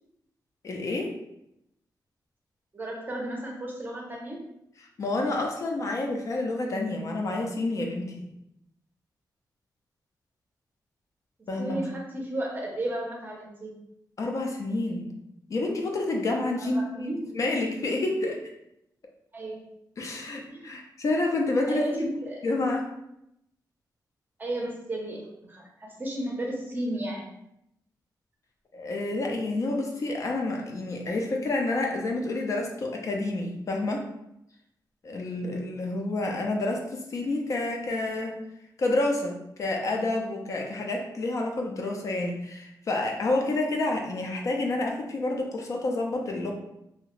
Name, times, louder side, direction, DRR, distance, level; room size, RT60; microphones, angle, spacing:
voice 1, 0.6-1.1 5.0-8.3 11.5-11.8 14.2-15.1 15.5-18.4 20.0-22.2 22.4-22.9 28.7-34.0 35.0-38.3 38.8-46.5, left 2 dB, 50° left, 1 dB, 0.4 m, -29 dB
voice 2, 2.7-4.4 11.6-13.8 16.6-17.2 19.3-19.6 20.5-20.8 21.7-22.4 24.4-27.3, right 1 dB, 25° right, -1 dB, 0.5 m, -33 dB
2.7 x 2.0 x 2.9 m, 0.81 s
wide cardioid pair, 160°, 7 cm